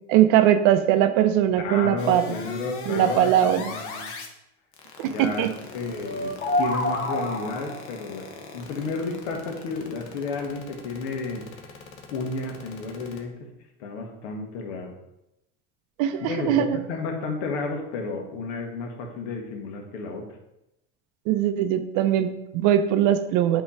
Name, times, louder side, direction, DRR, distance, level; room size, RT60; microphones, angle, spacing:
voice 1, 0.1-2.2 2.9-3.7 5.0-5.5 16.0-16.8 21.3-23.6, right 11 dB, 60° right, 10 dB, 0.6 m, -21 dB
voice 2, 1.6-4.1 5.1-5.5 5.7-11.5 12.1-13.5 13.8-14.9 16.2-20.3, left 3 dB, 75° left, 3 dB, 1.4 m, -32 dB
sound 1, 2.0-4.3 4.7-13.2, left 4 dB, 55° left, 1.1 m, -38 dB
sound 2, 6.0-7.9, left 1 dB, 35° left, 1.2 m, -27 dB
8.0 x 3.0 x 4.2 m, 0.89 s
supercardioid pair, 125°, 36 cm